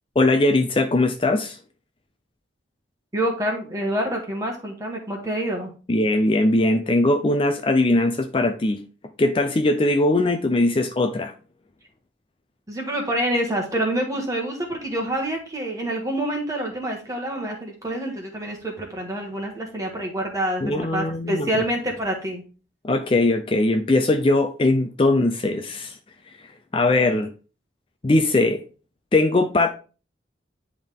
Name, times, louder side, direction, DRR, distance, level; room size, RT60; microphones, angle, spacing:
voice 1, 0.2-1.6 5.9-8.8 9.2-11.3 20.6-21.6 22.8-26.0 26.7-27.3 28.0-28.6 29.1-29.7, left 2 dB, 30° left, 6 dB, 0.4 m, -20 dB
voice 2, 3.1-5.7 12.7-22.4, right 1 dB, 20° right, 0 dB, 1.5 m, -27 dB
10.0 x 3.6 x 3.5 m, 0.37 s
head